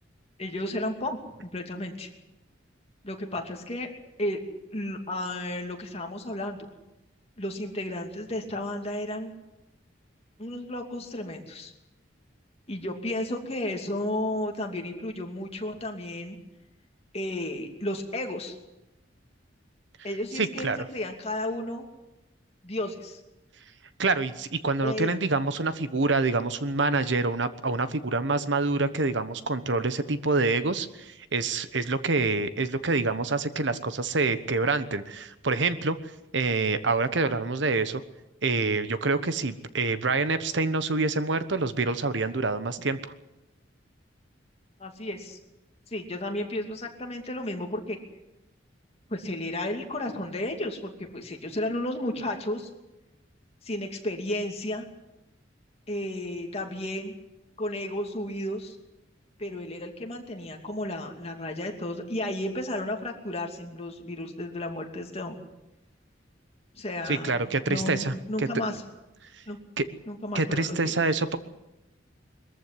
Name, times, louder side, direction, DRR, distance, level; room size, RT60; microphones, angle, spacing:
voice 1, 0.4-2.1 3.0-3.9 4.2-4.4 4.7-6.6 7.4-9.3 10.4-11.7 12.7-16.4 17.1-18.5 20.0-21.9 22.6-23.2 24.8-25.1 44.8-45.4 45.9-48.0 49.1-52.7 53.6-54.9 55.9-57.1 57.6-58.8 59.4-65.4 66.8-68.8 69.5-69.6 70.1-71.2, left 1 dB, 35° left, 3 dB, 2.7 m, -33 dB
voice 2, 20.3-20.8 24.0-36.0 36.3-38.0 38.4-43.1 67.1-68.5 69.8-69.9 70.3-71.4, right 3 dB, 65° right, 12 dB, 1.1 m, -26 dB
22.5 x 14.5 x 9.7 m, 0.97 s
head